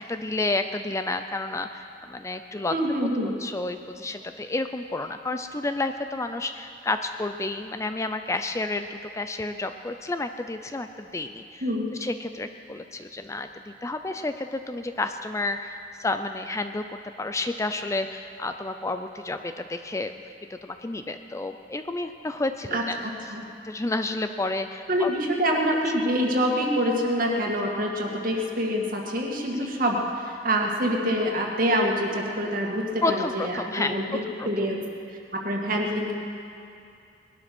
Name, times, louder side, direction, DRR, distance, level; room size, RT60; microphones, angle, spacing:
voice 1, 0.1-2.7 3.4-11.6 12.0-20.1 20.5-23.0 23.6-25.1 33.0-34.0 34.3-34.5, left 2 dB, 15° left, 8 dB, 0.5 m, -30 dB
voice 2, 2.7-3.3 11.6-11.9 22.7-22.8 23.3-23.4 24.9-34.8 35.4-36.1, equal, 50° right, 0 dB, 2.1 m, -26 dB
19.5 x 12.0 x 6.1 m, 2.6 s
head